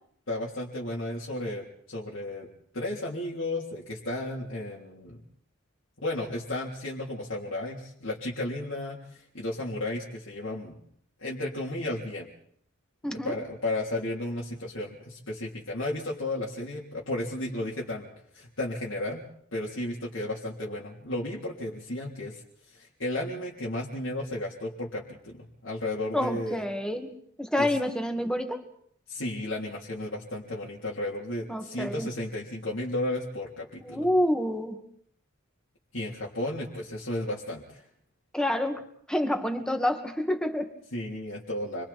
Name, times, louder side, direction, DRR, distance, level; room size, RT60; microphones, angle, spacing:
voice 1, 0.3-2.5 2.7-5.2 6.0-10.7 11.2-12.3 13.1-18.1 18.3-19.2 19.5-22.4 22.7-26.6 27.6-27.7 29.1-34.1 35.9-37.8 40.9-41.8, left 1 dB, 75° left, -5 dB, 3.5 m, -33 dB
voice 2, 13.0-13.4 26.1-28.6 31.5-32.1 33.8-34.8 38.3-38.8 39.1-40.7, left 1 dB, 5° left, 4 dB, 2.1 m, -28 dB
29.5 x 23.0 x 4.4 m, 0.65 s
head